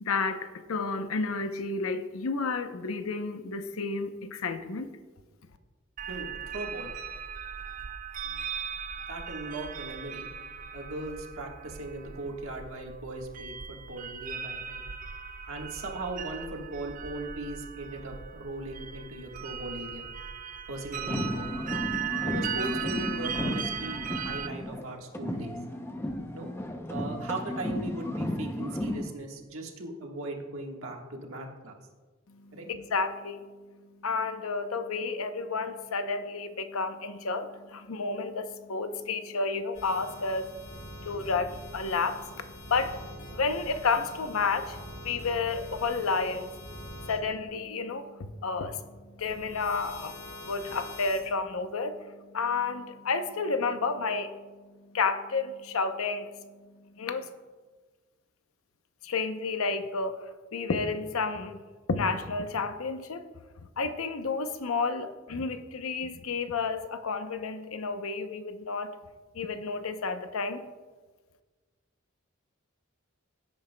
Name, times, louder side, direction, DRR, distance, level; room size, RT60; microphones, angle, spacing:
voice 1, 0.0-4.9 32.3-33.4 34.0-46.5 47.1-48.8 49.2-50.2 50.5-54.4 54.9-56.3 57.0-57.3 59.0-61.6 61.9-63.2 63.8-68.9 69.3-70.6, left 4 dB, 90° left, 9 dB, 0.7 m, -31 dB
sound 1, 6.0-24.5, right 8 dB, 40° right, 0.4 m, -38 dB
voice 2, 6.1-7.0 8.2-8.4 9.1-10.3 10.7-14.8 15.5-20.1 20.7-21.5 22.2-25.6 26.3-26.5 26.9-31.8 32.5-32.7, right 2 dB, 80° right, 1 dB, 1.4 m, -39 dB
sound 2, 21.0-24.9 25.1-29.1, left 1 dB, 10° left, 0.6 m, -34 dB
sound 3, 39.7-47.2 49.2-51.3, left 1 dB, 65° left, 2.9 m, -44 dB
16.5 x 8.7 x 2.2 m, 1.4 s
head